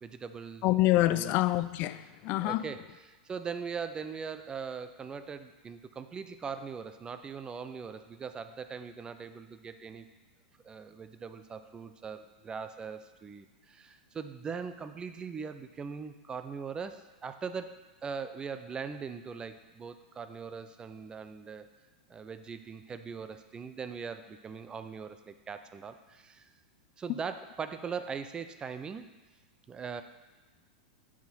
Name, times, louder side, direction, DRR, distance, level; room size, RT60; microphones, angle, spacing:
voice 1, 0.0-0.8 1.1-1.4 2.4-10.1 10.6-21.7 22.1-26.5 27.0-29.1 29.7-30.0, right 6 dB, 20° right, 0.5 m, -40 dB
voice 2, 0.6-2.6, left 16 dB, 45° left, 0.3 m, -26 dB
9.1 x 5.0 x 4.3 m
hypercardioid pair, 120°, 5 cm